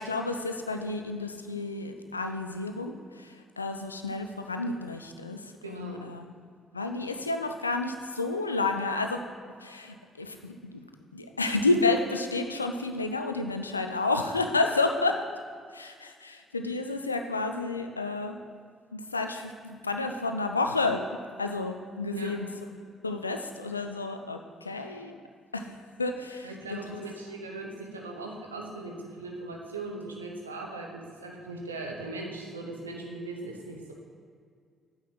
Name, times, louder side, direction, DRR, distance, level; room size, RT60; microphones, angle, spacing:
voice 1, 0.0-6.2 6.7-9.2 9.6-10.8 11.1-15.2 15.7-18.4 18.9-21.0 21.4-22.5 23.0-25.2 25.5-25.7 26.0-27.0, left 3 dB, 85° left, 6 dB, 0.4 m, -30 dB
voice 2, 5.6-6.0 22.1-22.4 26.4-33.9, right 2 dB, 85° right, 0 dB, 0.9 m, -39 dB
9.0 x 4.0 x 6.3 m, 2.1 s
figure-of-eight pair, 45°, 0 cm